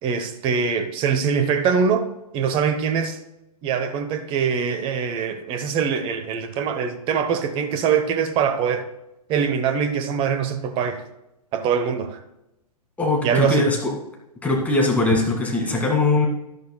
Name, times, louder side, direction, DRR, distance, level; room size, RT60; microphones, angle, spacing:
voice 1, 0.0-2.1 2.3-3.2 3.6-8.9 9.3-11.0 11.5-12.2 13.2-13.7, right 6 dB, 25° right, 1.0 m, -23 dB
voice 2, 13.0-13.9 14.4-16.3, left 2 dB, 5° left, 2.2 m, -21 dB
11.5 x 11.5 x 2.3 m
figure-of-eight pair, 115°, 20 cm